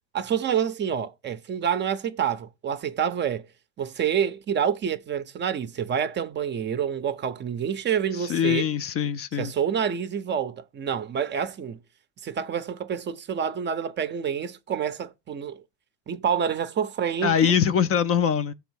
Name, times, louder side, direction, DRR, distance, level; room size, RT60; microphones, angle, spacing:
voice 1, 0.1-3.5 3.8-8.7 9.4-11.8 12.2-15.6 16.1-17.6, right 8 dB, 30° right, 0.5 m, -27 dB
voice 2, 8.1-9.5 17.2-18.5, left 8 dB, 40° left, 0.4 m, -23 dB
6.9 x 3.4 x 6.2 m
cardioid pair, 140°, 39 cm